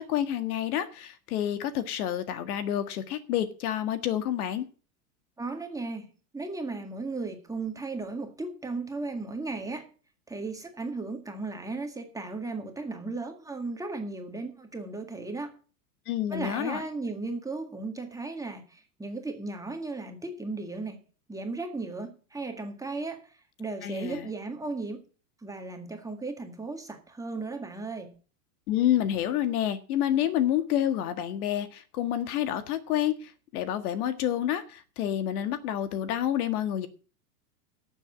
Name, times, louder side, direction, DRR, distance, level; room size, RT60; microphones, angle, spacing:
voice 1, 0.0-4.7 16.1-16.8 23.8-24.3 28.7-36.9, left 11 dB, 65° left, 1.8 m, -28 dB
voice 2, 5.4-9.9 10.3-15.6 16.3-21.0 21.3-25.0 25.4-28.1, right 3 dB, 5° right, 1.8 m, -36 dB
12.0 x 7.3 x 7.5 m
supercardioid pair, 135°, 47 cm